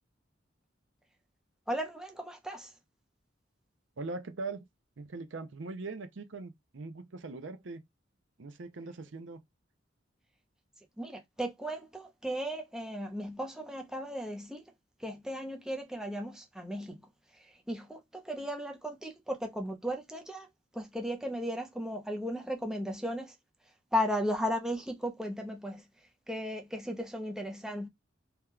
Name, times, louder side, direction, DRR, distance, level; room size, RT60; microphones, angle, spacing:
voice 1, 1.7-2.7 11.0-14.6 15.0-17.0 17.3-20.5 20.7-23.3 23.9-25.8 26.3-27.9, equal, 5° right, 0.6 m, -36 dB
voice 2, 4.0-4.7 5.0-7.9 8.4-9.4, right 3 dB, 70° right, 0.6 m, -41 dB
2.9 x 2.3 x 3.6 m
head